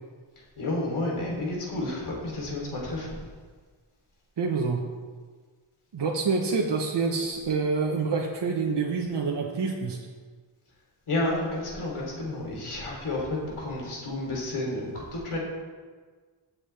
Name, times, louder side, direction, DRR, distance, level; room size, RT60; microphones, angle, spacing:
voice 1, 0.6-3.2 11.1-15.4, left 2 dB, 80° left, -3 dB, 3.5 m, -31 dB
voice 2, 4.4-4.8 5.9-10.0, right 4 dB, 55° right, -1 dB, 1.2 m, -27 dB
15.5 x 7.6 x 3.4 m, 1.5 s
wide cardioid pair, 95°, 49 cm